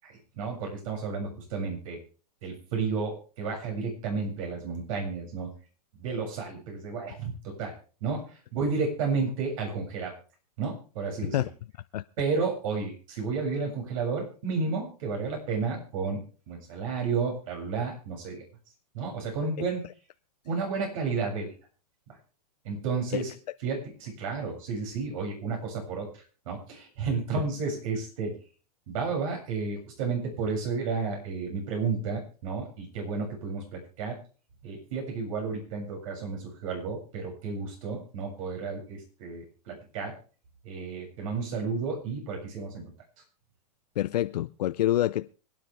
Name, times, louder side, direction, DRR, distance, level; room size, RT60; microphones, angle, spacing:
voice 1, 0.0-2.0 2.4-5.5 5.9-7.7 8.0-10.1 10.6-11.4 12.2-18.4 18.9-19.8 20.4-21.6 22.1-22.2 22.6-23.3 23.6-28.4 28.9-34.2 34.6-40.2 40.6-42.9, right 4 dB, 55° right, 1 dB, 7.4 m, -32 dB
voice 2, 44.0-45.3, left 13 dB, 80° left, 13 dB, 0.5 m, -26 dB
25.5 x 9.5 x 3.5 m, 0.38 s
hypercardioid pair, 150°, 20 cm